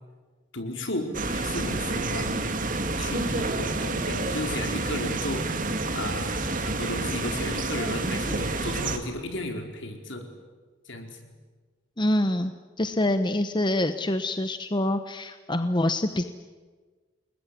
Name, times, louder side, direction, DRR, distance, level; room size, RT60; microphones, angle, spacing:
voice 1, 0.5-2.6 3.0-5.5 5.9-6.4 6.6-10.3 10.9-11.2, left 1 dB, 65° left, 4 dB, 4.6 m, -34 dB
sound 1, 1.1-9.0, right 2 dB, 40° right, 2.3 m, -29 dB
voice 2, 12.0-16.2, left 1 dB, 20° left, 9 dB, 0.9 m, -26 dB
29.0 x 21.0 x 9.6 m, 1.4 s
head